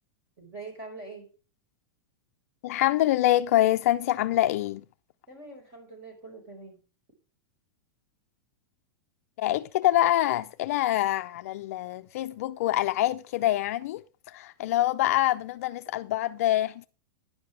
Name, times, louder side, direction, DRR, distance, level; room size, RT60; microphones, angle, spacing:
voice 1, 0.4-1.3 5.3-6.8, right 3 dB, 25° right, 4.7 m, -44 dB
voice 2, 2.6-4.8 9.4-14.0 14.3-16.9, left 14 dB, 40° left, 0.4 m, -25 dB
11.5 x 10.0 x 3.3 m
supercardioid pair, 180°, 12 cm